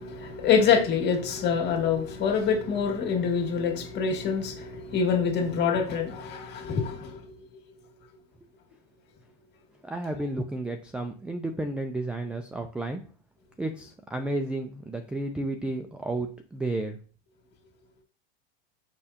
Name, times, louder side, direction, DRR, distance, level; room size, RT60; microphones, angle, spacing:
voice 1, 0.0-7.4, left 6 dB, 35° left, 3 dB, 2.1 m, -26 dB
voice 2, 9.8-13.0 13.6-17.0, right 2 dB, 5° right, 5 dB, 0.4 m, -32 dB
6.6 x 5.4 x 2.9 m, 0.39 s
supercardioid pair, 125°, 29 cm